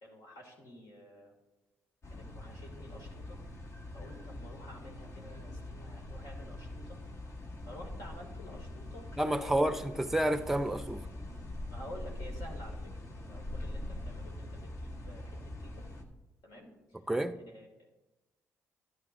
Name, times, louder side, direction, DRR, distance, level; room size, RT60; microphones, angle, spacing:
voice 1, 0.0-1.4 2.1-3.4 3.9-7.0 7.7-9.1 9.4-9.9 11.7-12.9 13.3-15.8 16.4-16.7 17.5-17.9, left 1 dB, 70° left, 2.3 m, -50 dB
sound 1, 2.0-16.0, left 1 dB, 50° left, 1.2 m, -43 dB
voice 2, 9.2-11.0 17.1-17.3, right 1 dB, 5° right, 0.6 m, -29 dB
11.0 x 10.5 x 2.6 m
hypercardioid pair, 50°, 7 cm